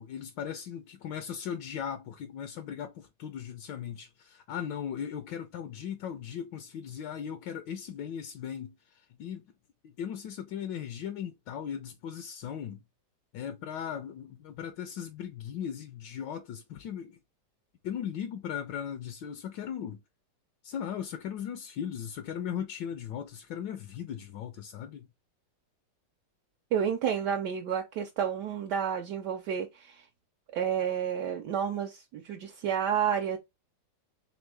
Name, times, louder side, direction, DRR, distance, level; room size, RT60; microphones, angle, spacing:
voice 1, 0.0-8.8 9.2-9.4 9.8-12.8 13.3-17.2 17.8-20.0 20.6-25.1, left 8 dB, 75° left, 1.2 m, -38 dB
voice 2, 26.7-30.0 30.5-33.4, right 8 dB, 70° right, 1.2 m, -30 dB
3.7 x 3.5 x 3.3 m
omnidirectional pair, 2.0 m